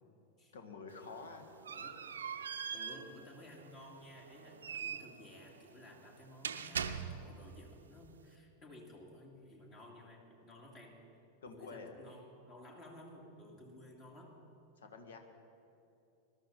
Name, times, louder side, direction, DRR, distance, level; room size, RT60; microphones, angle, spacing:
voice 1, 0.5-1.5 11.4-11.9 14.8-15.2, left 4 dB, 65° left, 5 dB, 1.5 m, -48 dB
sound 1, 0.9-7.5, right 7 dB, 70° right, 0.6 m, -43 dB
voice 2, 1.7-2.0 2.7-11.0 11.5-14.4, left 1 dB, 35° left, 0 dB, 2.6 m, -55 dB
20.5 x 12.5 x 4.1 m, 2.7 s
figure-of-eight pair, 90°, 0 cm